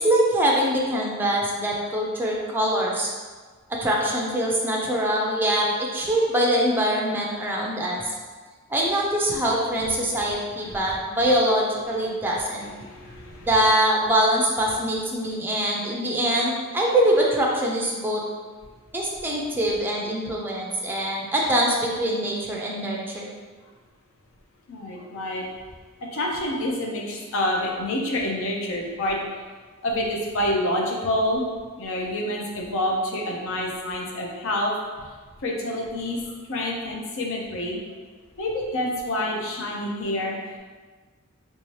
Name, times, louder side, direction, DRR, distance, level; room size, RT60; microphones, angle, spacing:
voice 1, 0.0-3.1 3.7-8.1 8.7-12.7 13.4-18.2 18.9-23.3, right 1 dB, 10° right, -3 dB, 0.4 m, -23 dB
voice 2, 10.6-11.0 12.8-13.5 24.7-25.5 26.0-29.3 29.8-31.4 31.8-35.1 35.4-37.8 38.4-40.6, left 1 dB, 65° left, -1 dB, 0.6 m, -28 dB
3.4 x 2.7 x 3.1 m, 1.4 s
head